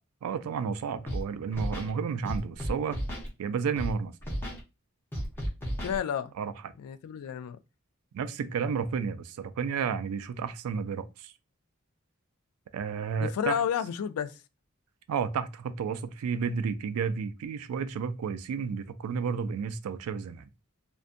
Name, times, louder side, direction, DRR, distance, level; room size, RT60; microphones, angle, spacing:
voice 1, 0.2-3.0 3.4-4.1 6.4-6.7 8.1-11.3 12.7-13.6 15.1-20.5, right 6 dB, 80° right, 0.3 m, -32 dB
Scratching (performance technique), 1.1-1.2 1.5-1.9 2.2-3.3 3.8-3.9 4.2-4.6 5.1-6.0, equal, 10° left, 0.7 m, -33 dB
voice 2, 5.8-6.3 6.8-7.6 13.2-14.4, left 8 dB, 85° left, 0.3 m, -31 dB
2.6 x 2.2 x 2.5 m
head